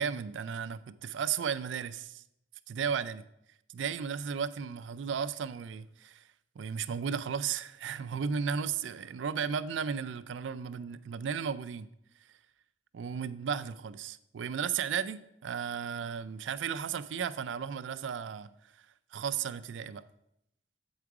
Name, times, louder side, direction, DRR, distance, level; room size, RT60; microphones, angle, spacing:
voice 1, 0.0-2.2 2.7-3.2 3.7-6.2 6.6-11.9 12.9-18.5 19.1-20.0, right 7 dB, 80° right, 13 dB, 0.4 m, -34 dB
8.0 x 4.8 x 4.7 m, 0.80 s
head